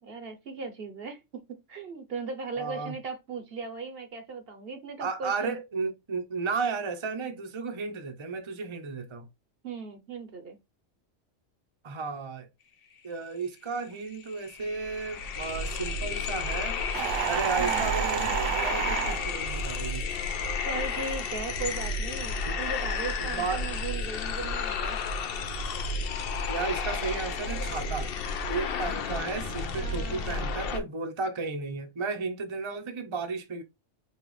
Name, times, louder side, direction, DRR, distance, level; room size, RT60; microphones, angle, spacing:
voice 1, 0.0-5.5 9.6-10.6 17.6-17.9 20.7-25.0 29.7-30.5, right 4 dB, 55° right, 1.0 m, -38 dB
voice 2, 2.6-2.9 5.0-9.3 11.8-12.5 13.0-16.8 17.3-20.1 22.5-22.6 23.2-23.6 26.5-28.1 28.5-33.6, right 4 dB, 30° right, 0.6 m, -33 dB
sound 1, 13.8-13.9 14.1-30.8, left 4 dB, 55° left, 0.7 m, -32 dB
sound 2, 16.9-19.2, right 10 dB, 80° right, 0.9 m, -29 dB
5.6 x 2.4 x 3.1 m
omnidirectional pair, 1.3 m